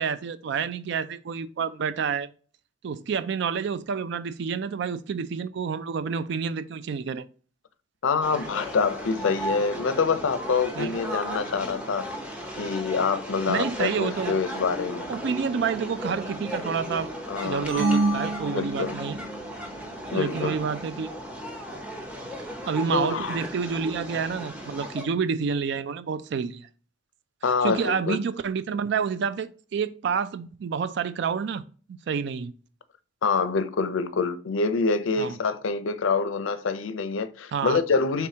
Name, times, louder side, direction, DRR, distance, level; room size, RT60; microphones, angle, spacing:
voice 1, 0.0-2.3 2.8-7.3 10.8-10.9 13.5-14.4 15.1-17.1 17.4-19.2 20.1-21.1 22.7-26.7 27.6-31.6 31.9-32.5 35.2-35.4 37.5-37.8, right 6 dB, 60° right, 0.3 m, -29 dB
voice 2, 8.0-12.1 12.6-15.1 17.3-17.7 18.5-19.0 20.1-20.6 22.9-23.4 27.4-28.2 33.2-38.3, left 4 dB, 80° left, 0.5 m, -26 dB
sound 1, 8.2-25.0, equal, 5° right, 0.7 m, -36 dB
sound 2, 17.7-19.4, right 2 dB, 80° right, 2.0 m, -26 dB
4.7 x 3.5 x 2.8 m
head